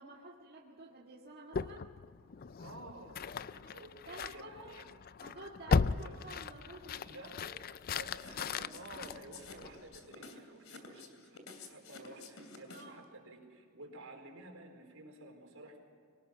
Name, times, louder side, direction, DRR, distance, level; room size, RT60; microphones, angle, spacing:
voice 1, 0.0-1.9 4.1-4.7 5.2-7.6 12.7-13.0, right 2 dB, 45° right, -4 dB, 2.0 m, -51 dB
sound 1, 1.5-10.0, left 5 dB, 40° left, 0.4 m, -37 dB
voice 2, 2.6-4.8 5.7-6.2 7.0-7.6 7.9-11.4 11.7-15.8, right 2 dB, 75° right, 2 dB, 4.2 m, -52 dB
sound 2, 8.1-13.0, left 3 dB, 70° left, 3.0 m, -51 dB
24.0 x 19.0 x 5.9 m, 2.3 s
head